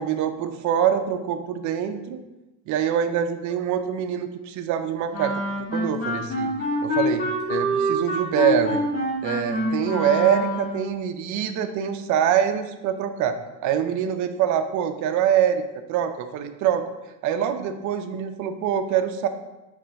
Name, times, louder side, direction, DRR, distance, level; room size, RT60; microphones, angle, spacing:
voice 1, 0.0-2.2 2.7-5.4 5.7-6.5 6.8-8.8 9.2-15.6 15.9-16.9 17.2-19.3, right 9 dB, 45° right, 8 dB, 0.5 m, -24 dB
Wind instrument woodwind instrument, 5.1-10.9, equal, 35° left, 1.9 m, -26 dB
5.7 x 3.2 x 5.1 m, 1.0 s
cardioid pair, 145°, 43 cm